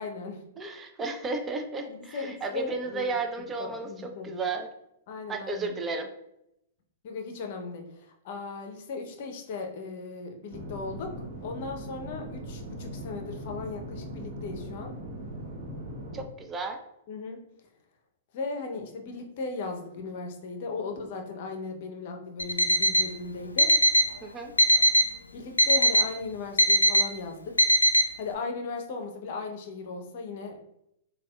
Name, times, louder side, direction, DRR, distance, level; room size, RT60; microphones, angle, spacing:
voice 1, 0.0-0.4 1.8-3.2 3.6-4.3 5.1-5.7 7.0-14.9 17.1-17.4 18.3-23.7 25.3-27.7 28.2-30.6, left 4 dB, 55° left, 4 dB, 0.6 m, -37 dB
voice 2, 0.6-4.7 5.3-6.1 16.1-16.8 24.2-24.5, right 3 dB, 20° right, 4 dB, 0.4 m, -33 dB
sound 1, 10.5-16.2, right 1 dB, 50° right, 0.8 m, -39 dB
Alarm, 22.4-23.1 23.6-24.1 24.6-25.1 25.6-26.1 26.6-27.1 27.6-28.1, equal, 90° left, 0.3 m, -21 dB
4.0 x 2.3 x 2.2 m, 0.79 s
figure-of-eight pair, 110°, 0 cm